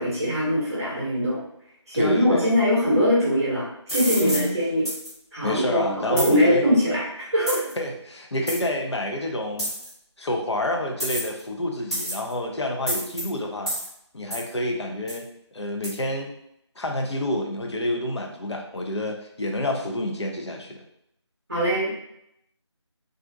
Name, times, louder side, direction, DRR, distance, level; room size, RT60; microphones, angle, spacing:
voice 1, 0.0-1.4 1.9-4.9 5.3-7.7 21.5-21.9, equal, 30° right, -6 dB, 0.7 m, -22 dB
voice 2, 1.9-2.5 4.2-4.6 5.4-6.6 7.8-9.7 10.2-13.7 14.1-15.3 15.5-16.3 16.8-20.8, left 1 dB, 65° left, 1 dB, 0.6 m, -28 dB
sound 1, 3.9-4.5 4.8-5.1 6.2-6.3 7.5-7.7 8.5-8.6 9.6-9.9 11.0-11.4 11.9-12.3 12.9-13.2 13.7-13.9 14.3-14.5 15.1-15.2 15.8-15.9, equal, 15° left, 0.8 m, -28 dB
2.4 x 2.1 x 2.5 m, 0.76 s
figure-of-eight pair, 165°, 15 cm